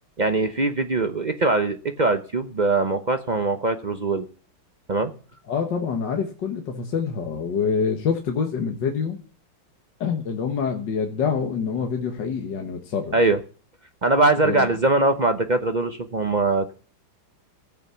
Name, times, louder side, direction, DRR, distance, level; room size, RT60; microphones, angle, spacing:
voice 1, 0.2-4.2 4.9-5.1 13.1-13.4 14.0-16.7, right 2 dB, 55° right, 8 dB, 0.4 m, -22 dB
voice 2, 5.5-9.2 10.0-13.2 14.4-14.7, left 6 dB, 70° left, 3 dB, 2.0 m, -26 dB
14.5 x 8.9 x 6.9 m, 0.39 s
omnidirectional pair, 2.0 m